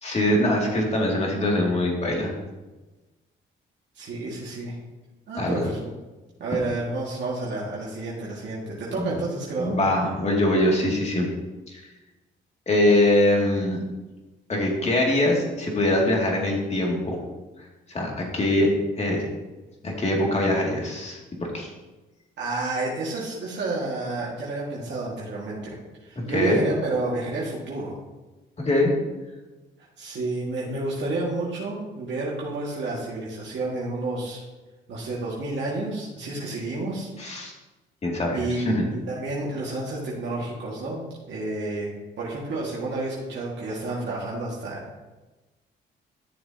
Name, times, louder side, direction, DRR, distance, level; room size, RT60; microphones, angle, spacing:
voice 1, 0.0-2.3 5.4-5.6 9.0-9.1 9.6-11.3 11.7-11.8 12.7-13.8 14.5-17.2 17.9-18.7 19.0-19.3 19.8-21.2 21.5-21.7 26.2-26.6 28.6-29.0 37.2-37.5 38.0-38.8, left 1 dB, 35° left, -1 dB, 2.5 m, -23 dB
voice 2, 3.9-4.7 5.3-5.8 6.4-9.8 22.4-27.9 30.0-34.4 34.9-37.1 38.3-41.0 41.3-41.9 42.2-45.0, right 2 dB, 65° right, -5 dB, 2.0 m, -30 dB
12.5 x 6.9 x 2.9 m, 1.2 s
cardioid pair, 90°, 20 cm